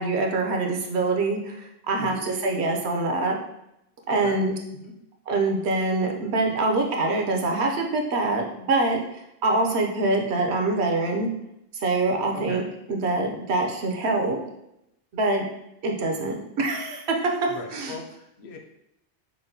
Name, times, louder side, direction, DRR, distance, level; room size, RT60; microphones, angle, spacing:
voice 1, 0.0-3.4 4.1-4.5 5.3-9.0 9.4-11.3 11.8-14.4 15.1-15.5 15.8-17.2 17.7-18.0, right 2 dB, 70° right, 2 dB, 0.9 m, -24 dB
voice 2, 2.0-2.3 4.1-4.4 4.8-5.0 12.3-12.7 17.5-18.6, left 3 dB, 70° left, 2 dB, 0.9 m, -39 dB
6.1 x 2.1 x 2.6 m, 0.82 s
omnidirectional pair, 1.2 m